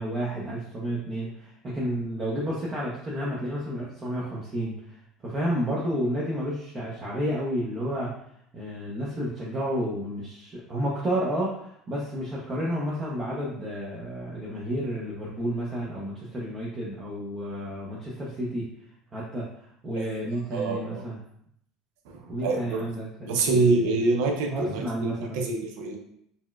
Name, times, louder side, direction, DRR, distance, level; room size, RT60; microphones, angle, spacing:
voice 1, 0.0-8.1 8.5-18.7 19.1-21.2 22.3-24.0 24.5-25.4, equal, 20° right, -6 dB, 0.6 m, -31 dB
voice 2, 20.5-21.0 22.1-22.8 23.2-26.0, right 3 dB, 80° right, 2 dB, 0.6 m, -26 dB
4.1 x 2.2 x 2.2 m, 0.70 s
cardioid pair, 150°, 0 cm